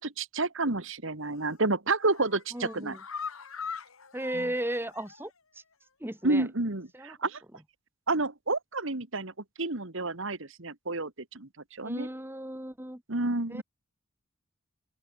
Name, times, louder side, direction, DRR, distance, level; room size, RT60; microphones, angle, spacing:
voice 1, 0.0-3.0 4.3-4.5 6.2-7.4 8.1-9.3 9.6-11.5 11.8-12.1 13.1-13.6, right 2 dB, 60° right, 1.9 m, -30 dB
sound 1, 1.2-1.6 2.0-5.4 5.7-5.8 6.2-6.3, left 5 dB, 75° left, 3.4 m, -42 dB
voice 2, 2.5-3.0 4.1-5.3 6.0-6.5 6.9-7.1 11.8-13.0 13.5-13.6, right 1 dB, 10° right, 1.9 m, -35 dB
open air
head